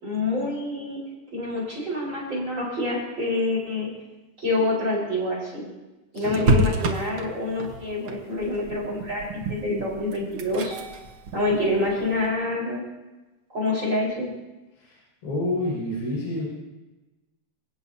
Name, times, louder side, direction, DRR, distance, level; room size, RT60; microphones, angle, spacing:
voice 1, 0.0-1.0 1.3-3.9 4.4-5.7 6.1-10.7 11.3-12.8 13.5-14.3, left 2 dB, 25° right, -3 dB, 5.0 m, -27 dB
voice 2, 6.1-6.5 15.2-16.5, left 1 dB, 80° left, -6 dB, 8.1 m, -28 dB
sound 1, 6.2-12.3, right 1 dB, 75° right, 1.2 m, -29 dB
27.0 x 17.5 x 2.8 m, 1.1 s
omnidirectional pair, 4.7 m